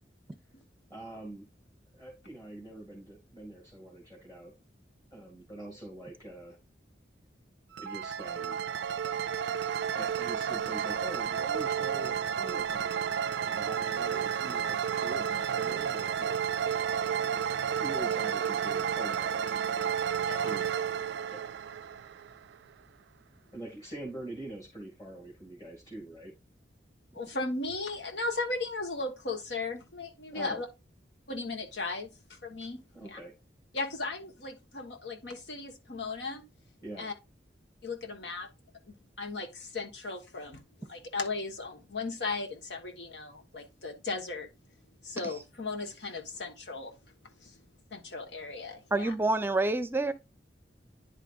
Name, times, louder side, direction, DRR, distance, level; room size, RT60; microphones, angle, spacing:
voice 1, 0.9-1.5 1.9-4.5 5.1-6.6 7.8-8.6 9.9-13.1 13.4-16.4 17.8-19.6 20.4-20.6 21.3-21.5 23.5-26.3 30.3-30.6 32.9-33.3 36.8-37.1, right 1 dB, 20° left, 2.3 m, -44 dB
sound 1, 7.7-22.5, right 8 dB, 70° right, 0.3 m, -31 dB
voice 2, 27.1-30.7 31.3-33.2 33.7-36.4 37.0-37.1 37.8-38.5 38.9-44.5 45.0-47.0 47.4-47.6 47.9-49.1, left 3 dB, 70° left, 1.3 m, -36 dB
voice 3, 48.9-50.1, right 2 dB, 15° right, 0.6 m, -27 dB
10.0 x 4.9 x 2.5 m
head